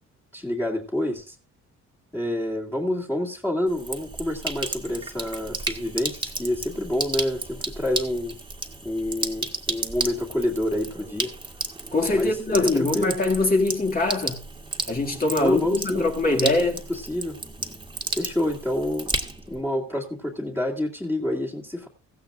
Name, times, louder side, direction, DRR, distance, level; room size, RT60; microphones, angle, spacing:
voice 1, 0.3-1.4 2.1-8.3 8.8-11.3 12.1-13.1 15.4-16.0 16.9-17.4 18.1-19.1 19.5-21.9, left 1 dB, 10° left, 2.3 m, -28 dB
Sink (filling or washing), 3.7-19.6, right 2 dB, 15° right, 1.8 m, -33 dB
voice 2, 11.9-14.4 14.9-16.8, left 2 dB, 30° left, 2.3 m, -23 dB
16.5 x 15.0 x 2.5 m
cardioid pair, 90°, 30 cm